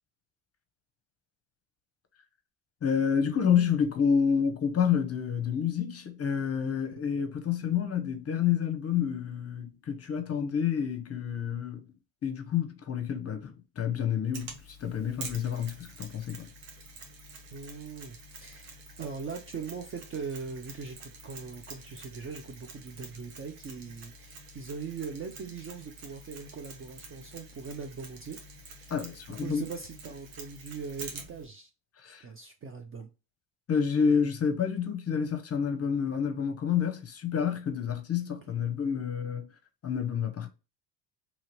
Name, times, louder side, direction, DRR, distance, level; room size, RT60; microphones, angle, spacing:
voice 1, 2.8-11.9 12.2-16.5 28.9-29.7 32.0-32.3 33.7-39.4 39.8-40.5, left 7 dB, 30° left, 0.7 m, -29 dB
Mechanisms, 14.3-31.4, right 3 dB, 85° right, 1.0 m, -47 dB
voice 2, 17.5-28.9 29.4-31.7 32.2-33.1 38.5-38.6, right 5 dB, 30° right, 0.4 m, -41 dB
2.9 x 2.7 x 3.0 m
supercardioid pair, 75°, 50 cm